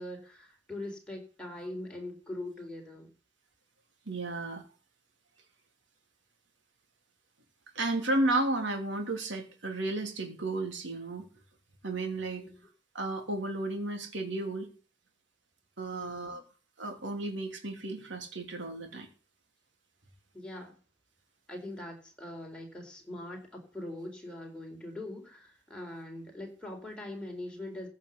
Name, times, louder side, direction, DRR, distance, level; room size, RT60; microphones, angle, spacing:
voice 1, 0.0-3.1 12.4-12.6 15.9-16.4 20.3-20.7 21.5-27.9, left 1 dB, 5° left, 0 dB, 4.3 m, -42 dB
voice 2, 4.1-4.6 7.7-11.2 11.8-12.4 12.9-14.7 15.8-16.4 16.8-19.1, right 2 dB, 75° right, 4 dB, 3.3 m, -33 dB
15.5 x 5.6 x 8.1 m, 0.36 s
head